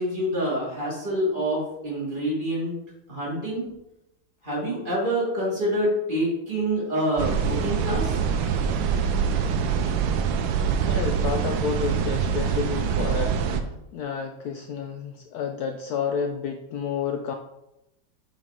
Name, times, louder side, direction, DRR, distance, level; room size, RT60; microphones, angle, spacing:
voice 1, 0.0-2.7 3.1-3.6 4.4-8.2, equal, 25° right, -6 dB, 2.7 m, -26 dB
sound 1, 7.2-13.6, right 7 dB, 80° right, 1.3 m, -24 dB
voice 2, 10.9-17.3, left 6 dB, 85° left, 4 dB, 0.8 m, -30 dB
7.9 x 4.7 x 3.6 m, 0.88 s
omnidirectional pair, 2.2 m